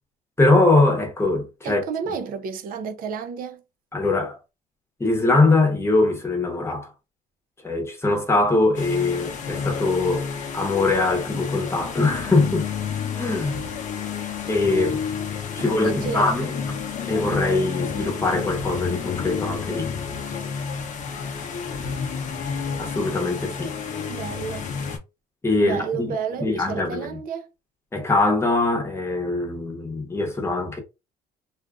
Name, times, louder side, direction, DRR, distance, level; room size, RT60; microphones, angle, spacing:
voice 1, 0.4-1.8 3.9-4.4 5.0-6.9 7.6-10.3 10.5-12.7 13.1-13.6 14.4-15.0 15.5-16.5 17.1-19.9 22.8-23.7 25.4-26.1 26.4-27.1 27.9-30.8, left 2 dB, 15° left, 0.9 m, -22 dB
voice 2, 1.6-3.6 15.6-16.4 24.1-24.7 25.6-27.5, right 6 dB, 55° right, 0.5 m, -31 dB
sound 1, 8.7-25.0, left 6 dB, 50° left, 0.7 m, -30 dB
2.6 x 2.4 x 2.3 m
cardioid pair, 110°, 17 cm